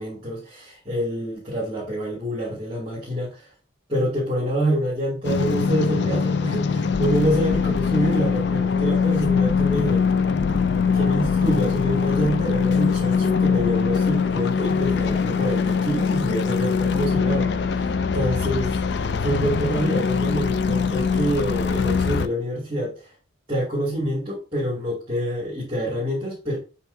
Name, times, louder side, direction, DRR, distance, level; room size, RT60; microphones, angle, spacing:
voice 1, 0.0-3.5 3.9-10.1 10.9-22.9 23.5-26.6, equal, 25° right, -6 dB, 2.4 m, -26 dB
sound 1, 5.2-22.3, left 5 dB, 60° left, 0.4 m, -22 dB
6.6 x 5.6 x 2.7 m, 0.34 s
head